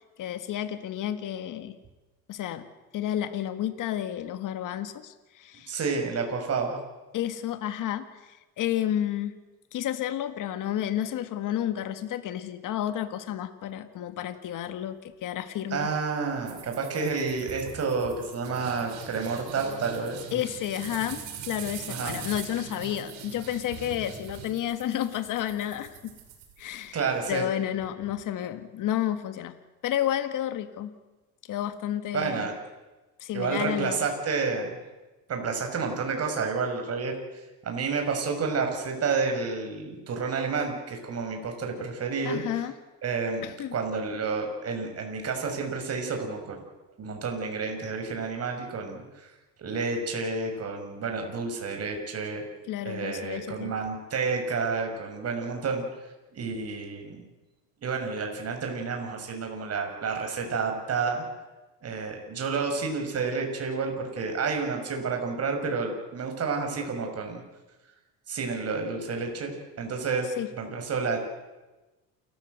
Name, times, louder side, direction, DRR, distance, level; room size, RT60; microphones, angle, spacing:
voice 1, 0.2-1.8 2.3-2.7 2.9-5.8 7.1-9.4 9.7-15.9 20.3-26.0 26.6-29.5 29.8-30.9 31.5-32.5 33.2-34.1 42.2-42.7 43.4-43.7 52.7-53.7 70.4-70.5, left 11 dB, 60° left, 10 dB, 1.8 m, -31 dB
voice 2, 5.7-6.8 15.7-20.4 21.9-22.2 26.9-27.4 32.1-32.5 33.3-34.8 35.3-37.1 37.6-42.4 43.0-46.6 47.0-49.3 49.6-52.4 52.8-55.8 56.3-57.3 57.8-61.2 61.8-67.4 68.3-70.3 70.5-71.2, right 4 dB, 45° right, 3 dB, 6.2 m, -30 dB
sound 1, 16.5-27.0, right 7 dB, 85° right, 7.3 m, -42 dB
29.0 x 14.5 x 8.0 m, 1.1 s
cardioid pair, 105°, 36 cm